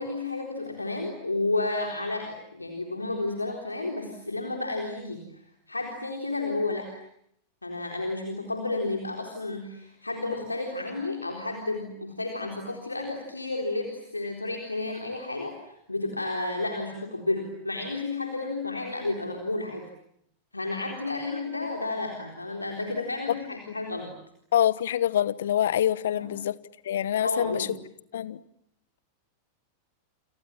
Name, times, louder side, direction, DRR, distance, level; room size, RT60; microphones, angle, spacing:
voice 1, 0.0-7.0 7.6-19.9 20.5-24.1 26.1-26.3 27.2-27.7, left 2 dB, 80° left, 3 dB, 3.9 m, -32 dB
voice 2, 24.5-26.6 26.8-27.7 28.1-28.4, left 11 dB, 60° left, 19 dB, 1.1 m, -25 dB
29.5 x 27.0 x 7.4 m, 0.72 s
figure-of-eight pair, 90°, 0 cm